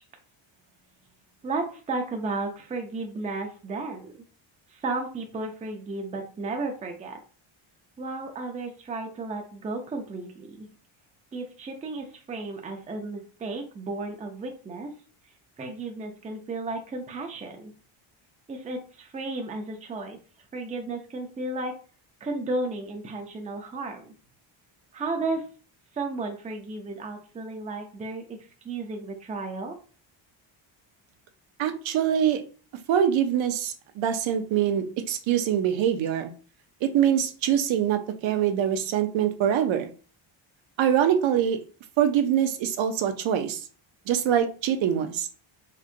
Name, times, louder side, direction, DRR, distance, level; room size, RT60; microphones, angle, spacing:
voice 1, 1.4-4.1 4.7-7.2 8.0-10.7 11.3-14.9 15.6-17.7 18.5-20.2 20.5-21.7 22.2-24.1 24.9-25.4 25.9-28.4 28.6-29.8, right 3 dB, 15° right, 3 dB, 0.5 m, -33 dB
voice 2, 31.6-32.4 32.9-36.3 36.8-39.9 40.8-41.6 42.0-43.6 44.1-45.3, right 9 dB, 70° right, 6 dB, 0.7 m, -24 dB
4.4 x 2.4 x 2.5 m, 0.38 s
cardioid pair, 150°, 49 cm